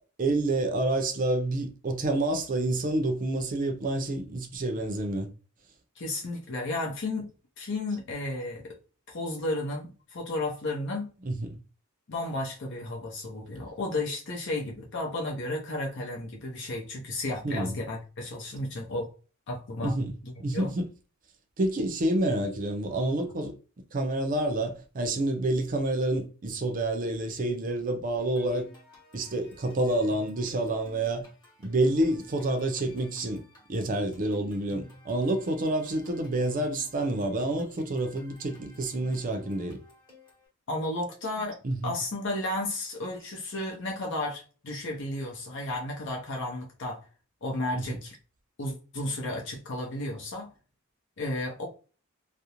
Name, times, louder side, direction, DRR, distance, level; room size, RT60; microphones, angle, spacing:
voice 1, 0.2-5.3 11.3-11.6 17.4-17.8 19.8-20.1 20.4-20.9 21.6-23.5 23.9-28.7 29.1-31.2 31.6-33.4 33.7-39.8 41.6-42.0 47.8-48.0, right 1 dB, 40° right, 0.5 m, -28 dB
voice 2, 6.0-7.3 7.6-8.8 9.1-11.1 12.1-19.1 19.5-20.0 20.2-20.7 40.7-47.0 47.4-48.1 48.6-50.5 51.2-51.7, left 2 dB, 60° left, 0.6 m, -33 dB
sound 1, 28.2-40.5, equal, 20° left, 1.0 m, -52 dB
2.5 x 2.0 x 2.8 m
head